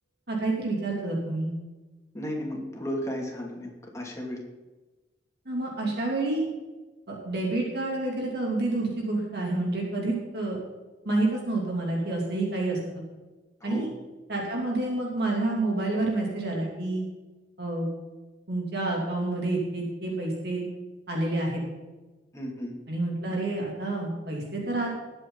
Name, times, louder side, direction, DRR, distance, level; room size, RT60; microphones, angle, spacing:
voice 1, 0.3-1.5 5.4-6.4 7.1-10.6 11.0-13.0 13.6-13.9 14.3-17.0 17.6-17.9 18.5-20.6 21.1-21.6 22.9-24.9, right 2 dB, 60° right, -2 dB, 3.0 m, -28 dB
voice 2, 2.1-4.4 13.6-13.9 22.3-22.7, equal, 15° left, -1 dB, 2.6 m, -34 dB
20.0 x 8.0 x 4.1 m, 1.2 s
head